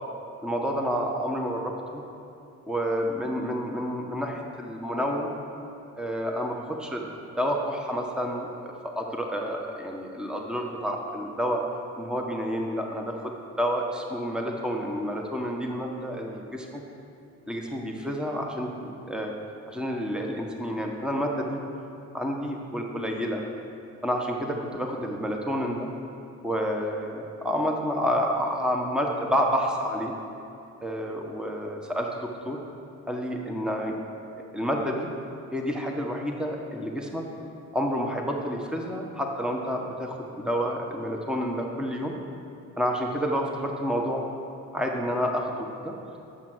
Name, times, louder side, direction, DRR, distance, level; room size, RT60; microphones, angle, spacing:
voice 1, 0.4-2.0 2.7-5.3 6.0-11.6 12.0-16.8 17.5-18.7 19.1-19.3 19.7-21.6 22.1-23.4 24.0-25.9 26.4-30.1 30.8-32.6 33.0-34.0 34.5-35.1 35.5-37.2 37.7-42.2 42.8-44.2 44.7-45.9, equal, 5° right, 1 dB, 1.3 m, -29 dB
11.5 x 7.5 x 6.3 m, 2.8 s
cardioid pair, 90°, 30 cm